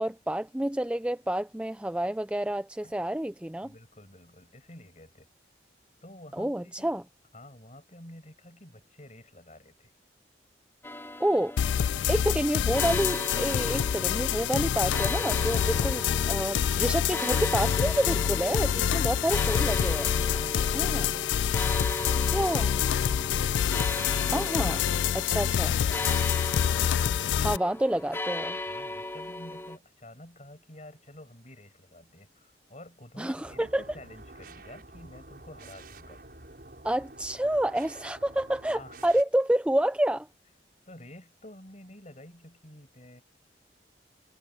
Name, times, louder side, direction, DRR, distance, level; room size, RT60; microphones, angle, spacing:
voice 1, 0.0-3.7 6.4-7.0 11.2-11.5 12.1-20.1 20.7-21.1 22.3-22.7 24.3-24.8 25.3-25.7 27.4-28.6 33.2-33.8 36.8-40.3, right 1 dB, 5° right, 0.4 m, -28 dB
voice 2, 3.6-5.3 6.0-7.0 7.3-9.9 20.2-23.3 24.6-26.6 26.9-27.6 28.7-36.2 38.7-39.0 40.9-43.2, left 1 dB, 40° left, 7.6 m, -50 dB
sound 1, 10.8-29.8, left 1 dB, 15° left, 2.5 m, -37 dB
sound 2, 11.6-27.6, left 9 dB, 85° left, 0.3 m, -27 dB
sound 3, 33.4-39.2, right 2 dB, 55° right, 6.3 m, -49 dB
head